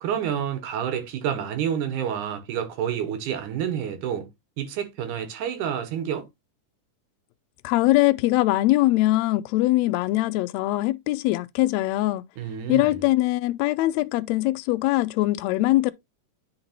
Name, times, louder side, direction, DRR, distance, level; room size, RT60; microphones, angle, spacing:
voice 1, 0.0-4.3 4.6-6.3 12.4-13.0, right 9 dB, 75° right, 2.4 m, -29 dB
voice 2, 7.6-12.2 12.7-15.9, left 17 dB, 90° left, 1.5 m, -22 dB
9.5 x 4.0 x 2.8 m
omnidirectional pair, 3.7 m